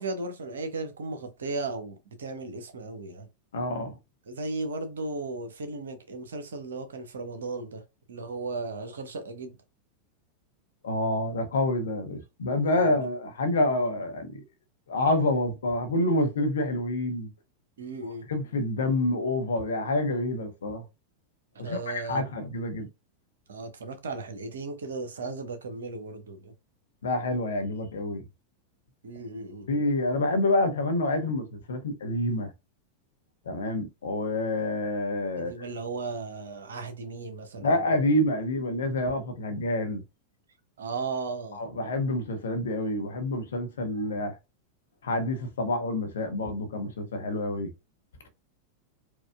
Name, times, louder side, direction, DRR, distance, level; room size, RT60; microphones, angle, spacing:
voice 1, 0.0-3.3 4.3-7.8 8.1-9.6 12.6-13.0 17.8-18.3 21.5-22.2 23.5-26.5 29.0-29.7 35.4-37.9 40.8-41.7, right 3 dB, 65° right, 0.7 m, -36 dB
voice 2, 3.5-4.0 10.8-14.4 14.9-17.3 18.1-20.8 21.6-22.9 27.0-28.3 29.7-32.5 33.5-35.5 37.6-40.0 41.5-44.3 45.0-47.7, left 1 dB, 65° left, 0.8 m, -27 dB
4.4 x 2.3 x 2.3 m
figure-of-eight pair, 90°, 0 cm